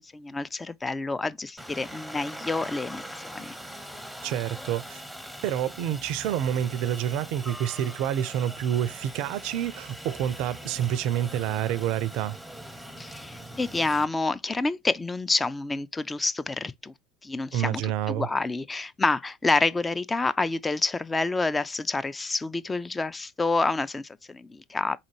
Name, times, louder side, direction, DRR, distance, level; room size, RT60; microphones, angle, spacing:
voice 1, 0.0-3.6 13.0-16.9 17.2-25.0, left 3 dB, 20° left, 0.4 m, -28 dB
Aircraft, 1.6-14.0, equal, ahead, 0.8 m, -42 dB
voice 2, 4.2-5.0 5.4-12.4 17.5-18.3, right 11 dB, 60° right, 0.4 m, -28 dB
4.2 x 3.9 x 3.0 m
figure-of-eight pair, 70°, 0 cm